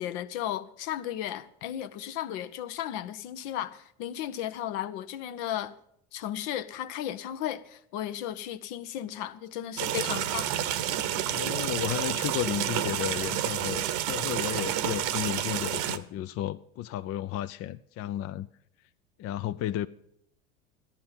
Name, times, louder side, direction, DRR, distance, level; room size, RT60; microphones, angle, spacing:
voice 1, 0.0-5.7 6.1-10.5, left 11 dB, 65° left, 0.8 m, -35 dB
sound 1, 9.8-16.0, right 11 dB, 65° right, 0.9 m, -29 dB
voice 2, 11.3-18.5 19.2-19.9, left 13 dB, 40° left, 0.4 m, -33 dB
13.0 x 10.5 x 5.7 m
hypercardioid pair, 85°, 36 cm